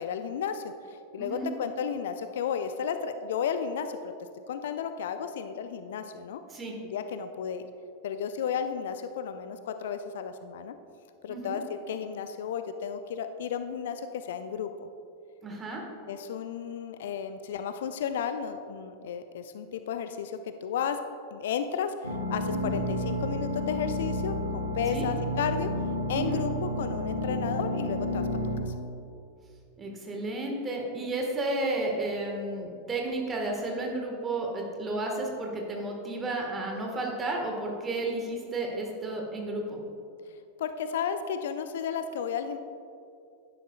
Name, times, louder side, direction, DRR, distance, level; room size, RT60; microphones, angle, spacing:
voice 1, 0.0-4.1 4.5-6.4 6.8-7.7 8.0-10.7 11.2-11.6 11.9-14.9 16.1-21.0 21.3-25.7 26.1-28.3 28.6-28.8 40.6-42.6, left 7 dB, 60° left, 9 dB, 0.4 m, -33 dB
voice 2, 1.2-1.5 6.5-6.7 11.3-11.6 15.4-15.8 22.5-22.8 24.9-25.1 26.1-26.4 29.8-39.8, right 2 dB, 20° right, 0 dB, 1.7 m, -32 dB
sound 1, 22.0-28.6, equal, 85° left, 1.2 m, -31 dB
11.0 x 10.0 x 2.4 m, 2.5 s
figure-of-eight pair, 90°, 0 cm